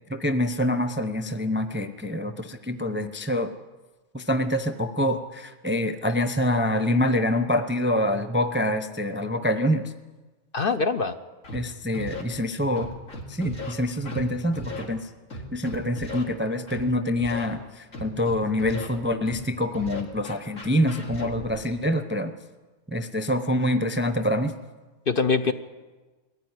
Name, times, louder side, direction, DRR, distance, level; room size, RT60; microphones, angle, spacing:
voice 1, 0.1-3.5 4.1-9.9 11.5-12.9 13.3-15.1 15.5-22.3 22.9-24.5, left 1 dB, 10° right, 8 dB, 0.6 m, -26 dB
voice 2, 10.5-11.2 25.1-25.5, left 4 dB, 45° left, 9 dB, 0.9 m, -23 dB
Scratching (performance technique), 11.4-11.6 11.9-12.2 12.8-13.7 14.1-14.2 14.5-14.9 15.3-16.2 16.7-16.8 17.2-17.5 17.9-18.9 19.3-19.4 19.7-21.6, left 1 dB, 65° left, 3.2 m, -36 dB
21.5 x 15.0 x 9.7 m, 1.3 s
omnidirectional pair, 1.5 m